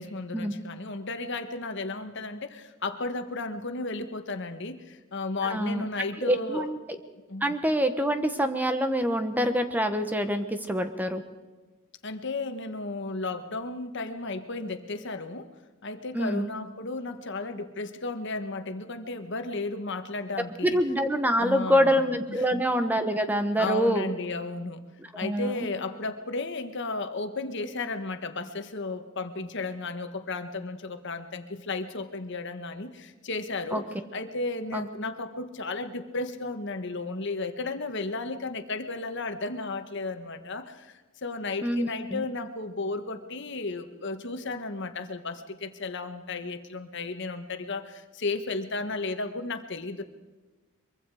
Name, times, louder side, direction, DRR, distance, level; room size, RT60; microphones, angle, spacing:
voice 1, 0.0-6.7 7.3-7.5 12.0-15.5 15.8-20.8 21.4-22.0 22.3-22.6 23.6-24.8 25.1-33.8 34.1-50.0, left 3 dB, 60° left, 8 dB, 1.5 m, -34 dB
voice 2, 5.4-5.8 6.3-6.8 7.4-11.2 16.1-16.5 20.6-24.1 25.1-25.7 33.7-33.8 34.7-34.8 41.6-42.2, equal, 10° right, 8 dB, 1.1 m, -26 dB
23.5 x 23.0 x 4.9 m, 1.2 s
head